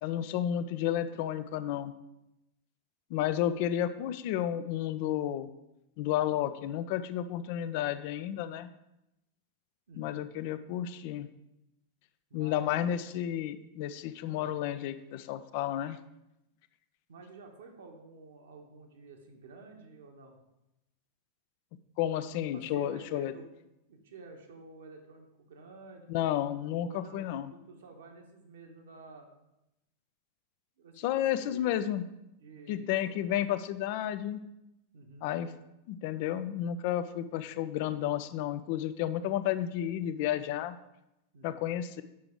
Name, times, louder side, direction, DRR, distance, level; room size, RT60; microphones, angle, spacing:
voice 1, 0.0-1.9 3.1-5.5 6.0-8.7 10.0-11.3 12.3-16.0 22.0-23.3 26.1-27.5 31.0-32.0 32.7-34.4 35.2-35.6 35.9-40.8 41.4-42.0, left 11 dB, 45° left, 13 dB, 0.4 m, -32 dB
voice 2, 9.9-10.3 12.3-12.9 14.3-14.5 17.1-20.4 22.5-23.5 23.9-26.1 26.8-29.3 30.8-31.8 32.4-33.4 34.9-35.3 41.3-41.8, right 3 dB, 60° right, 3 dB, 1.2 m, -51 dB
7.4 x 5.8 x 3.7 m, 0.89 s
figure-of-eight pair, 90°, 0 cm